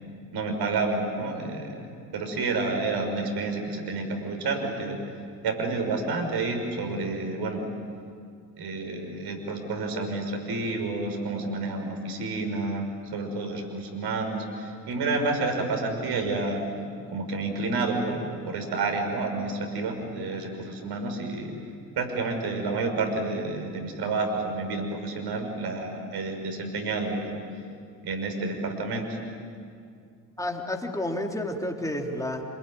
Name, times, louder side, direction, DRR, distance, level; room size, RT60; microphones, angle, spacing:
voice 1, 0.3-1.9 2.1-5.0 5.4-7.6 8.6-12.8 13.1-16.6 17.1-21.5 22.0-27.4 28.0-29.2, right 3 dB, 50° right, 4 dB, 5.8 m, -29 dB
voice 2, 30.4-32.4, left 1 dB, 5° left, 1 dB, 3.7 m, -30 dB
27.5 x 21.5 x 9.5 m, 2.3 s
figure-of-eight pair, 55°, 49 cm